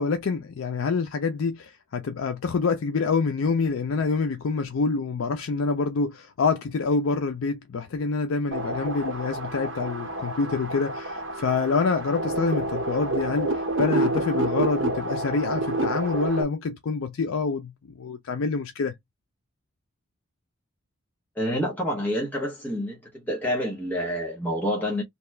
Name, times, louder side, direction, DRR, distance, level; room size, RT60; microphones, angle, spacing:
voice 1, 0.0-17.7 18.0-18.9, left 4 dB, 75° left, 0.4 m, -26 dB
sound 1, 8.5-16.4, right 2 dB, 60° right, 0.7 m, -28 dB
voice 2, 21.4-25.0, equal, 10° left, 0.8 m, -28 dB
2.9 x 2.3 x 3.1 m
head